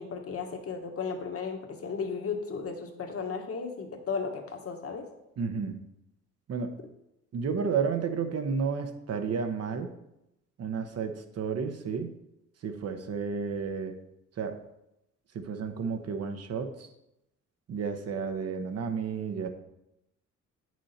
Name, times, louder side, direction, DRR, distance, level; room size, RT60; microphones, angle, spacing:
voice 1, 0.0-5.0, left 5 dB, 50° left, 4 dB, 1.5 m, -35 dB
voice 2, 5.4-5.8 6.5-6.8 7.3-9.9 10.6-12.1 12.6-13.9 14.4-14.6 15.3-16.9 17.7-19.5, right 5 dB, 55° right, 7 dB, 1.0 m, -32 dB
8.8 x 6.2 x 4.3 m, 0.87 s
cardioid pair, 90°, 30 cm